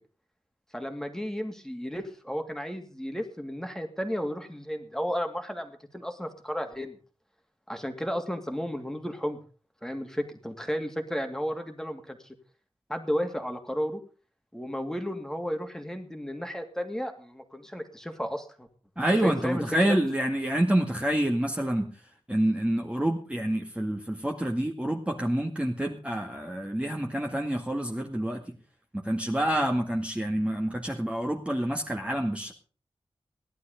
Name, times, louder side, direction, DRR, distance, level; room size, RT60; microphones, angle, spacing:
voice 1, 0.7-7.0 7.7-9.4 9.8-12.3 12.9-14.0 14.5-18.7 19.2-20.0, equal, 5° left, 5 dB, 2.6 m, -33 dB
voice 2, 19.0-21.9 22.3-28.4 29.0-32.5, right 1 dB, 10° right, 1 dB, 2.0 m, -27 dB
18.0 x 11.5 x 5.1 m, 0.38 s
wide cardioid pair, 100°, 11 cm